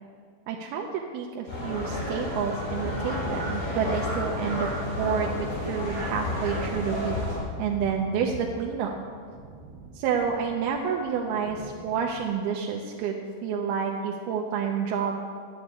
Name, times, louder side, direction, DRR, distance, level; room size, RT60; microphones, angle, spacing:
voice 1, 0.5-7.2 7.6-9.0 10.0-15.2, right 6 dB, 80° right, 0 dB, 2.7 m, -29 dB
sound 1, 1.5-7.4, left 1 dB, 75° left, 5.9 m, -31 dB
Thunder, 2.6-12.3, right 2 dB, 60° right, 2.3 m, -45 dB
11.5 x 9.2 x 8.2 m, 2.1 s
omnidirectional pair, 4.6 m